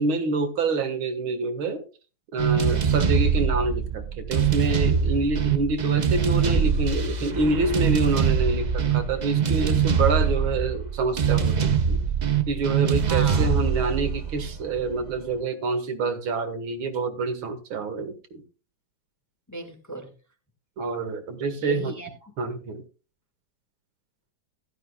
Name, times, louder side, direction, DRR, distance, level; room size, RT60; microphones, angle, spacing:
voice 1, 0.0-1.8 2.3-12.0 12.5-18.4 20.8-22.0 22.4-22.8, right 3 dB, 85° right, 7 dB, 2.3 m, -27 dB
sound 1, 2.4-15.1, right 7 dB, 60° right, 0.4 m, -23 dB
voice 2, 13.0-13.7 19.5-20.1 21.6-22.3, right 2 dB, 10° left, 3 dB, 1.5 m, -37 dB
15.0 x 11.5 x 2.3 m, 0.33 s
omnidirectional pair, 2.2 m